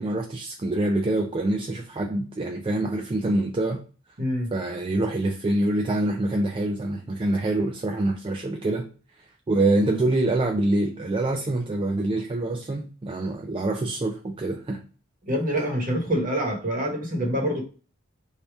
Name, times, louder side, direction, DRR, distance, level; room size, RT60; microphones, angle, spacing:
voice 1, 0.0-3.8 4.5-8.9 9.5-14.8, right 2 dB, 25° right, 2 dB, 0.4 m, -25 dB
voice 2, 4.2-4.5 15.2-17.6, equal, 45° right, 2 dB, 1.1 m, -26 dB
3.3 x 2.7 x 4.5 m, 0.37 s
head